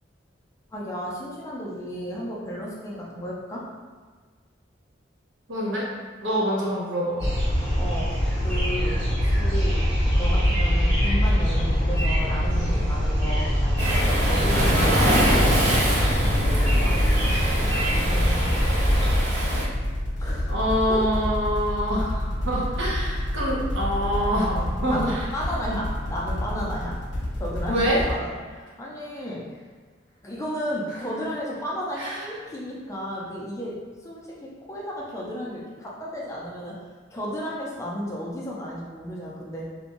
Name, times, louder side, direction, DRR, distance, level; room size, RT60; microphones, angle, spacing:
voice 1, 0.7-3.7 7.8-9.8 10.2-17.0 20.2-20.6 20.9-21.1 24.9-27.0 27.4-29.5 30.2-36.8 37.1-39.7, equal, 15° left, -4 dB, 0.4 m, -33 dB
voice 2, 5.5-5.9 6.2-7.3 20.5-25.2 27.7-28.0 32.0-32.2, equal, 85° right, -5 dB, 0.7 m, -26 dB
sound 1, 7.2-19.2, equal, 60° right, 1.3 m, -22 dB
Waves surf, 13.8-19.6, right 1 dB, 40° right, 0.6 m, -25 dB
sound 2, 18.8-28.1, left 1 dB, 75° left, 0.6 m, -29 dB
2.5 x 2.2 x 2.9 m, 1.5 s
head